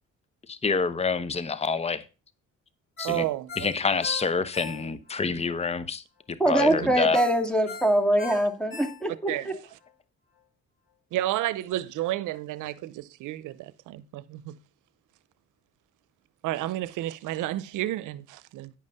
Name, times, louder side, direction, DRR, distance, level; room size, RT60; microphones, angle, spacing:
voice 1, 0.5-2.0 3.0-3.2 3.6-6.0 6.5-7.2, left 4 dB, 20° left, 0.8 m, -27 dB
Ringtone, 3.0-5.2 5.6-5.7 7.1-9.4 9.8-9.9, left 5 dB, 45° left, 5.6 m, -41 dB
voice 2, 3.0-3.7 6.7-6.8 9.3-9.5 11.1-14.6 16.4-18.7, right 14 dB, 90° right, 0.7 m, -31 dB
voice 3, 6.4-9.5, right 1 dB, 5° left, 2.1 m, -23 dB
10.0 x 5.4 x 5.4 m
cardioid pair, 90°, 30 cm